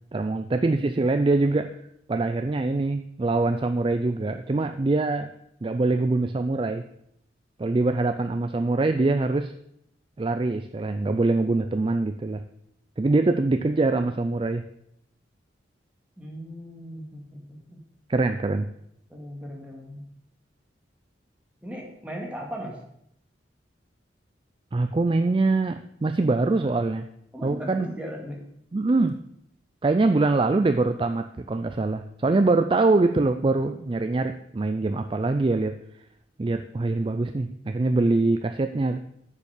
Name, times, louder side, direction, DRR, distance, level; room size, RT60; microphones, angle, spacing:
voice 1, 0.1-1.8 2.1-5.3 5.6-6.8 7.6-9.5 10.2-12.4 13.0-14.6 18.1-18.7 24.7-27.1 27.4-27.9 28.7-29.2 29.8-35.8 36.4-39.0, right 3 dB, 30° right, 8 dB, 0.4 m, -24 dB
voice 2, 16.2-17.8 19.1-20.1 21.6-22.8 27.3-28.4 32.3-32.4, equal, 5° right, -1 dB, 1.9 m, -37 dB
7.2 x 6.9 x 6.5 m, 0.75 s
head